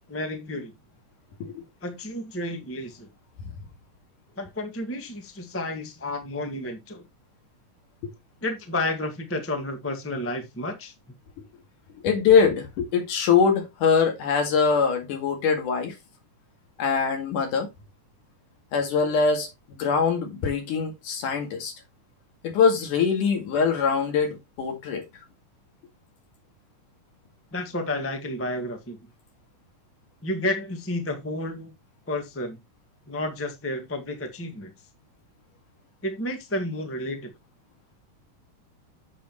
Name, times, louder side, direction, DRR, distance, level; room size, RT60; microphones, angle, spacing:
voice 1, 0.1-0.7 1.8-3.1 4.4-7.0 8.4-10.9 27.5-29.0 30.2-31.7 32.1-32.6 33.1-34.7 36.0-37.3, left 1 dB, 10° left, 0.6 m, -31 dB
voice 2, 12.0-15.9 16.8-17.7 18.7-21.7 22.4-25.1, left 6 dB, 75° left, 3.6 m, -23 dB
8.3 x 7.5 x 3.1 m
omnidirectional pair, 3.7 m